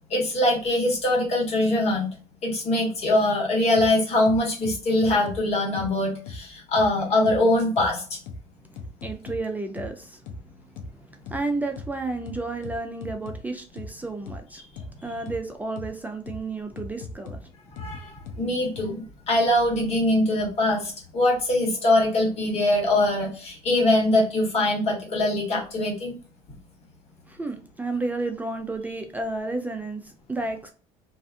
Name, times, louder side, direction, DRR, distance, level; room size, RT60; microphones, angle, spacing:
voice 1, 0.1-2.1 2.4-8.2 14.6-14.7 17.8-26.1, left 1 dB, 50° left, 1.3 m, -23 dB
sound 1, 3.8-3.9 4.3-5.4 5.8-5.9 6.3-6.4 6.8-6.9 7.3-7.4 7.8-7.9 8.3-8.4 8.8-9.4 9.8-9.9 10.3-10.4 10.8-10.9 11.3-11.4 11.8-11.9 12.3-13.4 13.8-13.9 14.3-14.4 14.8-14.9 15.3-15.4 15.8-15.9 16.3-16.4 16.8-17.4 17.8-17.9 18.3-18.4 18.8-18.9, left 4 dB, 75° left, 0.6 m, -37 dB
voice 2, 9.0-10.2 10.9-14.6 15.0-17.5 27.3-30.7, right 2 dB, 10° right, 0.4 m, -32 dB
2.5 x 2.3 x 2.5 m
supercardioid pair, 85°, 13 cm